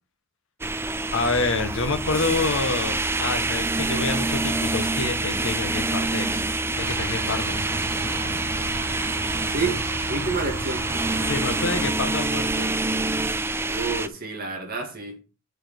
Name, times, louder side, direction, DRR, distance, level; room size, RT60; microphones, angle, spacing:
sound 1, 0.6-14.1, right 2 dB, 10° right, 0.4 m, -26 dB
voice 1, 1.1-6.4 6.7-7.6 11.2-12.7, left 3 dB, 60° left, 7 dB, 1.4 m, -27 dB
Musical instrument, 1.1-12.8, left 2 dB, 10° left, 1.0 m, -39 dB
sound 2, 6.8-11.9, right 4 dB, 90° right, 0.9 m, -35 dB
voice 2, 9.5-9.8 10.1-10.9 13.7-15.2, right 3 dB, 45° right, 2 dB, 2.2 m, -29 dB
6.8 x 5.1 x 6.6 m, 0.31 s
head